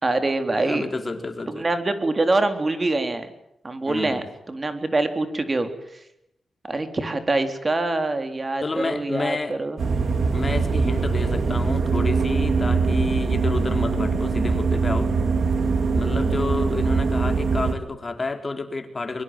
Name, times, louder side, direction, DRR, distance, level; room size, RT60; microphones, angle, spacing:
voice 1, 0.0-0.9 1.5-3.3 3.6-5.7 6.6-9.8, right 2 dB, 35° right, 8 dB, 3.7 m, -24 dB
voice 2, 0.6-1.7 3.9-4.2 8.6-9.6 10.3-15.1 15.9-19.2, left 3 dB, 40° left, 7 dB, 4.0 m, -30 dB
sound 1, 9.8-17.7, right 4 dB, 70° right, 3.1 m, -22 dB
24.0 x 22.5 x 9.1 m, 0.80 s
cardioid pair, 75°, 0 cm